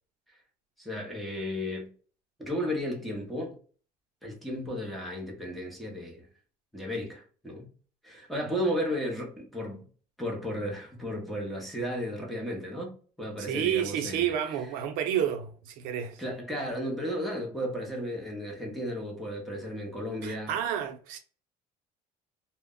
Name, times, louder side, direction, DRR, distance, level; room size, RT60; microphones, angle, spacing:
voice 1, 0.8-1.9 2.4-3.6 4.2-6.3 6.7-7.7 8.0-9.9 10.2-14.3 16.2-20.5, equal, ahead, 0.7 m, -34 dB
voice 2, 13.4-16.2 20.2-21.2, right 10 dB, 80° right, 0.5 m, -30 dB
2.1 x 2.0 x 3.5 m
cardioid pair, 155°, 14 cm